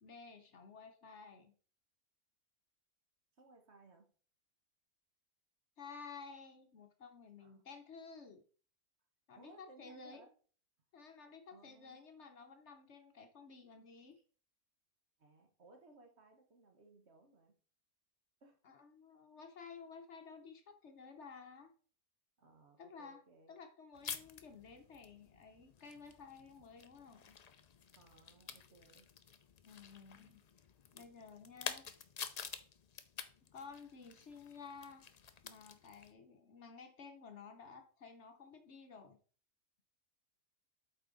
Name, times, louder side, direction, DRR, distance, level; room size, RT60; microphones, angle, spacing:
voice 1, 0.0-1.5 5.8-8.4 9.3-10.2 10.9-14.2 18.6-21.7 22.8-23.2 23.5-27.3 29.6-30.5 30.9-31.9 33.5-35.1 35.4-39.2, left 5 dB, 55° left, 6 dB, 1.0 m, -54 dB
voice 2, 3.4-4.1 7.4-7.6 9.3-10.3 11.5-12.0 14.1-14.2 15.2-17.6 18.4-18.6 22.4-23.6 28.0-29.1, right 3 dB, 50° right, 4 dB, 1.4 m, -62 dB
sound 1, 23.9-36.1, left 7 dB, 85° left, 0.3 m, -50 dB
8.2 x 5.1 x 3.9 m, 0.42 s
omnidirectional pair, 1.6 m